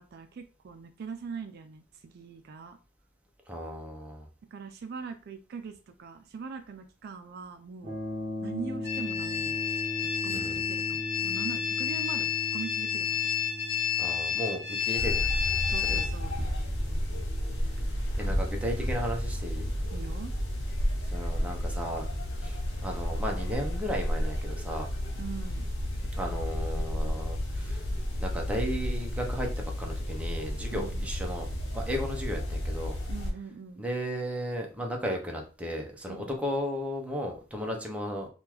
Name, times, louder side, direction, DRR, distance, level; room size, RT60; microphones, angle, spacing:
voice 1, 0.0-2.8 4.5-8.0 8.4-9.6 10.2-13.1 15.7-16.3 19.9-20.3 25.2-25.7 30.7-31.1 33.1-33.9 36.1-36.4, right 5 dB, 55° right, 7 dB, 0.3 m, -42 dB
voice 2, 3.5-4.3 10.3-10.6 14.0-15.3 15.9-16.1 16.9-17.0 18.2-19.7 21.1-22.1 22.4-24.9 26.1-27.9 28.2-31.5 31.7-33.0 33.8-38.3, equal, 5° right, 1 dB, 0.6 m, -35 dB
sound 1, 7.8-17.9, left 1 dB, 25° right, 1.0 m, -39 dB
sound 2, 8.8-16.1, left 9 dB, 25° left, 1.7 m, -30 dB
sound 3, 15.0-33.3, equal, 60° left, 0.7 m, -32 dB
3.5 x 2.3 x 2.9 m, 0.35 s
head